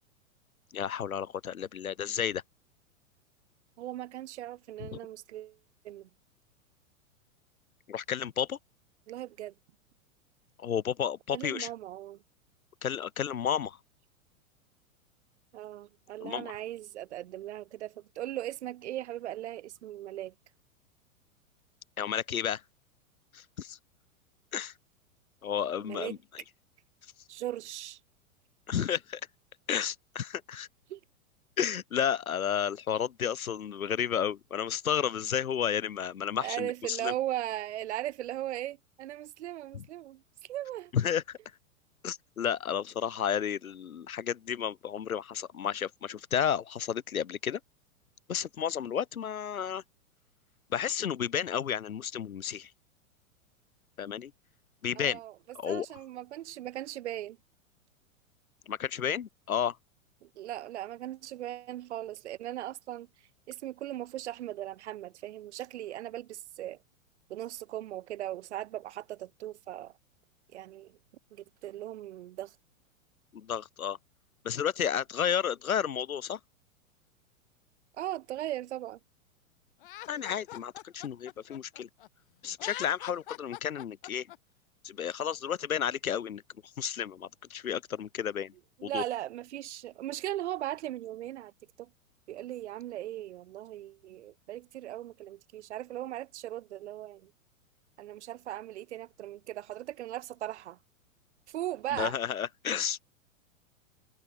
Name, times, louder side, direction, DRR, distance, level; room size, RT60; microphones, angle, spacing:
voice 1, 0.7-2.4 4.8-5.0 7.9-8.6 10.6-11.7 12.8-13.8 16.2-16.5 22.0-22.6 23.3-23.8 24.5-24.7 25.4-26.4 28.7-29.2 29.7-30.7 31.6-37.1 39.7-39.8 40.9-41.4 42.0-47.6 48.3-49.8 50.7-52.7 54.0-54.3 54.8-55.2 55.5-55.9 58.7-59.8 73.3-74.0 74.4-76.4 80.1-81.9 82.4-84.3 84.8-86.4 86.8-88.5 88.8-89.0 101.9-103.0, left 8 dB, 85° left, 0.6 m, -32 dB
voice 2, 3.8-5.6 5.8-6.1 9.1-9.5 11.3-12.2 15.5-20.3 25.8-26.1 27.3-28.0 30.9-31.0 36.4-40.9 54.9-55.3 55.6-57.4 60.2-63.1 63.5-66.8 67.3-69.9 70.5-71.0 71.3-72.5 78.0-79.0 88.8-91.5 91.8-91.9 92.3-97.3 98.0-100.8 101.5-102.1, right 13 dB, 55° right, 1.6 m, -38 dB
Laughter, 79.8-82.1 82.5-84.4, left 15 dB, 40° left, 0.4 m, -44 dB
figure-of-eight pair, 100°, 41 cm